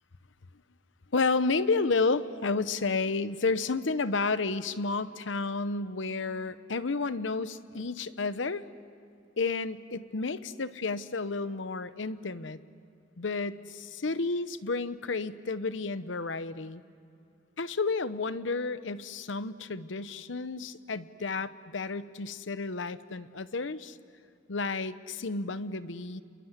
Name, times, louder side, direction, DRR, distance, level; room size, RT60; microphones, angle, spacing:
voice 1, 1.1-8.6 9.4-12.6 13.2-16.8 17.6-24.0 24.5-26.2, left 3 dB, 80° left, 14 dB, 0.9 m, -31 dB
29.0 x 22.5 x 8.2 m, 2.5 s
head